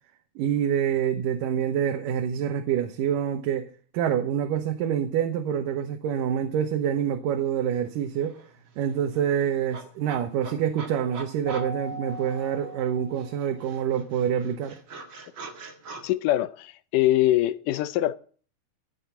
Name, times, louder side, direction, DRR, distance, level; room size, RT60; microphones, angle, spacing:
voice 1, 0.4-3.7 3.9-8.4 8.8-14.8, right 9 dB, 90° right, 2.7 m, -26 dB
sound 1, 7.9-8.0 8.2-12.8 13.2-16.0, right 4 dB, 45° right, 2.2 m, -44 dB
Keyboard (musical), 11.4-13.7, right 1 dB, 35° left, 3.5 m, -40 dB
voice 2, 16.0-18.2, left 14 dB, 80° left, 2.3 m, -23 dB
14.5 x 7.7 x 6.9 m
omnidirectional pair, 3.7 m